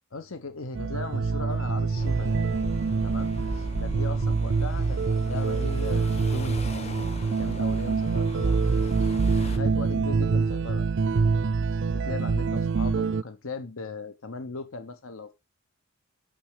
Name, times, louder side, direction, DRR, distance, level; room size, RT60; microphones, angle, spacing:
voice 1, 0.1-2.4 3.0-8.6 9.4-10.9 11.1-11.4 11.9-15.3, left 3 dB, 75° left, 1.1 m, -38 dB
sound 1, 0.7-13.2, right 4 dB, 55° right, 0.4 m, -25 dB
sound 2, 2.0-9.6, left 1 dB, 30° left, 1.1 m, -38 dB
9.1 x 6.9 x 5.0 m
head